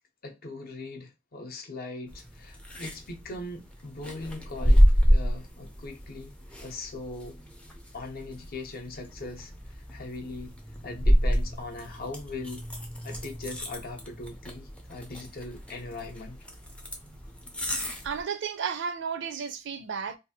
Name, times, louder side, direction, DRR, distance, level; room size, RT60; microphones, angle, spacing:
voice 1, 0.2-4.8 5.1-6.4 6.6-7.4 7.9-10.5 10.8-12.7 13.0-16.4, left 2 dB, 45° left, 0.6 m, -40 dB
sound 1, 2.1-18.2, equal, 5° left, 0.4 m, -28 dB
voice 2, 18.0-20.2, right 6 dB, 55° right, 0.4 m, -33 dB
2.7 x 2.3 x 2.7 m
head